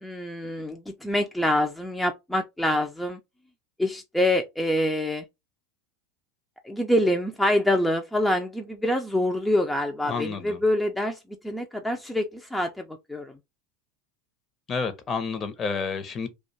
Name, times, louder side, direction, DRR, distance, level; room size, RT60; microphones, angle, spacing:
voice 1, 0.0-3.2 3.8-5.2 6.6-11.2 11.4-13.3, left 1 dB, 5° left, 0.4 m, -25 dB
voice 2, 10.1-10.6 14.7-16.3, left 5 dB, 35° left, 0.7 m, -30 dB
2.4 x 2.3 x 4.0 m
hypercardioid pair, 80°, 0 cm